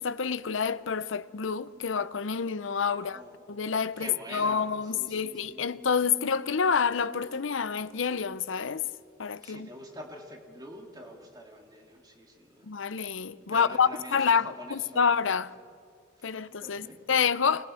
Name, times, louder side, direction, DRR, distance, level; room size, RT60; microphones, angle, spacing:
voice 1, 0.0-3.2 3.5-8.8 9.2-9.7 12.6-15.5 16.2-17.7, left 6 dB, 75° left, 0.7 m, -28 dB
voice 2, 2.9-3.4 4.0-5.7 9.4-12.7 13.5-15.1 16.2-17.2, equal, 20° right, 2.7 m, -46 dB
26.0 x 20.5 x 6.4 m
head